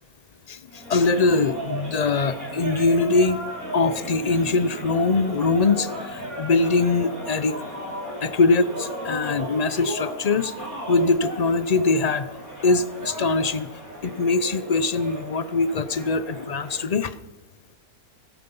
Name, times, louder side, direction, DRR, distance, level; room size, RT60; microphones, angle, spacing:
voice 1, 0.5-3.4 3.7-7.5 8.2-10.5 10.9-12.3 12.6-13.7 14.0-17.1, left 3 dB, 80° left, 13 dB, 0.3 m, -22 dB
sound 1, 0.7-16.9, equal, 65° right, 6.3 m, -35 dB
17.0 x 15.0 x 5.4 m, 1.1 s
omnidirectional pair, 1.6 m